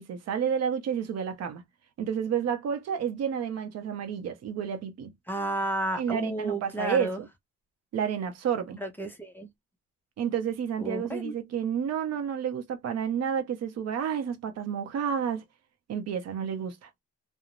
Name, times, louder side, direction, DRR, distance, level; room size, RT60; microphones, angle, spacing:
voice 1, 0.0-1.6 2.0-5.1 5.9-7.3 7.9-8.8 10.2-15.4 15.9-16.9, right 8 dB, 60° right, 0.6 m, -30 dB
voice 2, 5.3-7.2 8.8-9.5 10.8-11.3, right 1 dB, 5° left, 0.6 m, -32 dB
2.5 x 2.0 x 2.9 m
cardioid pair, 140°, 30 cm